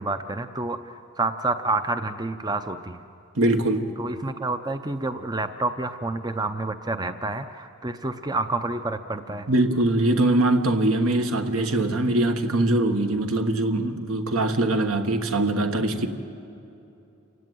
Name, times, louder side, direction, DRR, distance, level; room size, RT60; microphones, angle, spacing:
voice 1, 0.0-3.0 4.0-9.5, right 2 dB, 20° right, 9 dB, 0.5 m, -29 dB
voice 2, 3.4-3.9 9.5-16.1, right 2 dB, 75° right, 6 dB, 1.5 m, -22 dB
28.0 x 16.0 x 9.3 m, 2.8 s
head